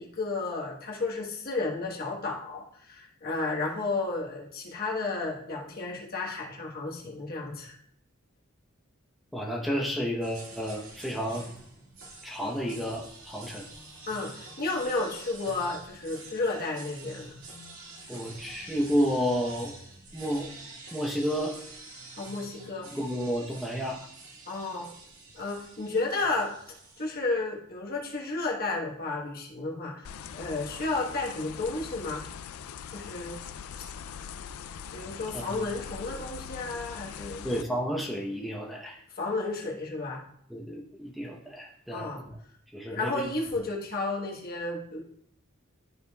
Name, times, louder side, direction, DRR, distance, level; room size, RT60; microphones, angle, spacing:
voice 1, 0.0-7.8 14.1-17.4 22.2-22.9 24.5-24.9 25.3-26.5 27.0-32.3 32.9-33.4 34.9-37.5 39.2-40.2 41.9-42.2 42.9-45.0, left 3 dB, 45° left, -1 dB, 1.3 m, -32 dB
voice 2, 9.3-11.5 12.2-13.7 18.1-19.7 20.1-20.5 20.9-21.5 22.9-24.0 35.3-35.4 37.4-39.0 40.5-42.4 42.7-43.6, equal, ahead, -2 dB, 0.8 m, -31 dB
sound 1, 10.2-27.1, right 3 dB, 75° right, 2.0 m, -47 dB
sound 2, 30.0-37.6, left 7 dB, 80° left, 0.4 m, -42 dB
12.5 x 5.0 x 2.3 m, 0.66 s
head